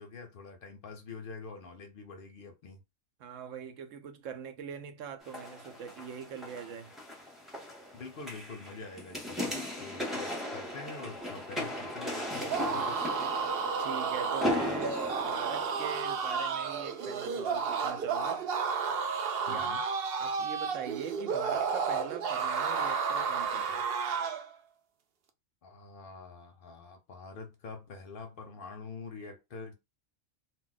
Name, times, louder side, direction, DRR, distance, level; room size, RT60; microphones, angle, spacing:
voice 1, 0.0-2.8 7.9-13.1 19.5-19.9 25.6-29.7, left 4 dB, 60° left, 0.6 m, -46 dB
voice 2, 3.2-6.9 13.8-18.5 19.5-19.7 20.2-23.8, right 7 dB, 85° right, 1.0 m, -42 dB
sound 1, 5.2-16.5 17.0-17.1, left 1 dB, ahead, 0.6 m, -37 dB
sound 2, 12.4-24.5, right 5 dB, 60° right, 0.7 m, -32 dB
2.2 x 2.2 x 3.8 m
omnidirectional pair, 1.3 m